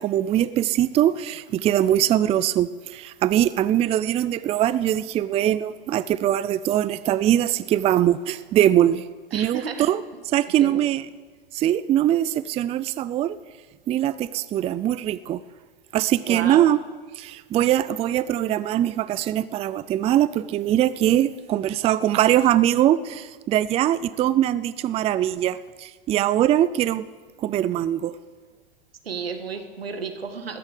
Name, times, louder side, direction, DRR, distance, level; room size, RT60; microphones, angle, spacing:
voice 1, 0.0-9.0 9.3-10.0 10.3-11.0 11.5-13.4 13.9-15.4 15.9-16.8 17.2-27.1 27.4-28.1, right 12 dB, 20° right, 16 dB, 0.4 m, -22 dB
voice 2, 9.3-9.9 10.6-10.8 16.3-16.6 29.0-30.6, right 5 dB, 90° right, 6 dB, 1.7 m, -32 dB
14.5 x 10.5 x 6.7 m, 1.4 s
hypercardioid pair, 105°, 29 cm